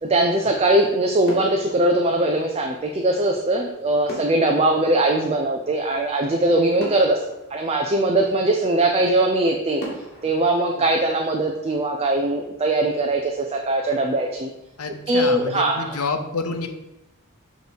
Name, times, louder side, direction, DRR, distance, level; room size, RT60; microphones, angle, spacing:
voice 1, 0.0-7.2 7.5-9.8 10.2-14.5 15.1-16.0, right 2 dB, 30° right, 2 dB, 0.4 m, -21 dB
sound 1, 1.2-2.7 4.1-6.0 6.4-6.5 6.8-8.4 8.9-9.0 9.8-11.7 12.0-12.2, equal, 50° left, 1.7 m, -40 dB
voice 2, 14.8-16.7, left 4 dB, 85° left, 6 dB, 0.7 m, -28 dB
6.6 x 3.1 x 5.1 m, 0.94 s
head